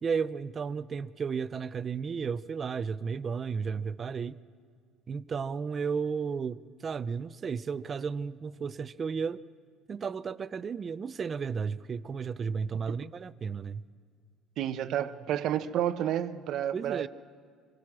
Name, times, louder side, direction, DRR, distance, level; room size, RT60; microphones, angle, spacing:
voice 1, 0.0-4.4 5.1-9.4 9.9-13.8 16.7-17.1, right 6 dB, 25° right, 0.5 m, -33 dB
voice 2, 14.6-17.1, right 11 dB, 55° right, 0.8 m, -30 dB
26.0 x 22.0 x 6.1 m
cardioid pair, 155°, 0 cm